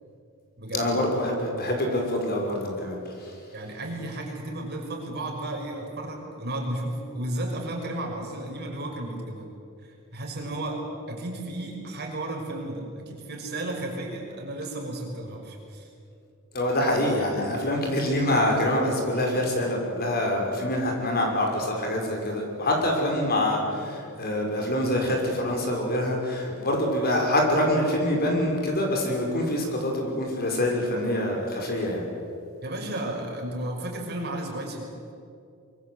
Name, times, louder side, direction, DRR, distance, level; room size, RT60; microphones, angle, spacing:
voice 1, 0.7-3.3 16.5-32.0, left 1 dB, 45° left, 1 dB, 6.0 m, -25 dB
voice 2, 3.5-9.5 9.8-15.9 32.6-34.9, right 1 dB, 50° right, 0 dB, 6.0 m, -33 dB
25.0 x 24.0 x 8.2 m, 2.5 s
head